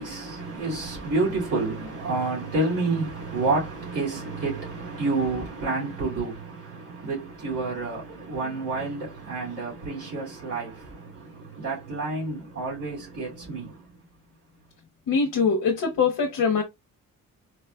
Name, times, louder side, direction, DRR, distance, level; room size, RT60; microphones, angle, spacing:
voice 1, 0.0-13.9, right 3 dB, 45° right, 2.5 m, -29 dB
voice 2, 15.1-16.6, left 5 dB, 65° left, 0.9 m, -23 dB
4.7 x 2.4 x 2.3 m
wide cardioid pair, 150°, 34 cm